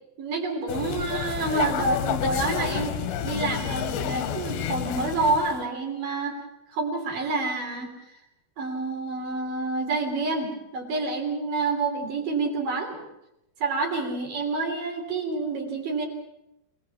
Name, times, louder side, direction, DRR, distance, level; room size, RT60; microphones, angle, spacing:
voice 1, 0.2-6.4 6.7-8.2 8.6-13.0 13.6-16.1, right 3 dB, 45° right, 3 dB, 4.4 m, -28 dB
sound 1, 0.7-5.7, left 9 dB, 65° left, 2.6 m, -30 dB
27.0 x 19.0 x 7.2 m, 0.87 s
omnidirectional pair, 5.8 m